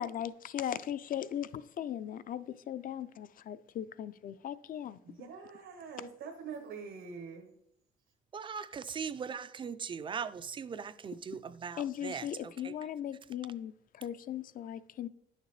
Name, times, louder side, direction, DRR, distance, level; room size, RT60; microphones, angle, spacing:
voice 1, 0.0-5.0 11.8-15.1, left 10 dB, 45° left, 0.4 m, -38 dB
voice 2, 5.0-7.5, right 5 dB, 80° right, 1.0 m, -45 dB
voice 3, 8.3-12.7, right 6 dB, 25° right, 0.3 m, -40 dB
10.5 x 6.5 x 3.1 m
cardioid pair, 125°, 20 cm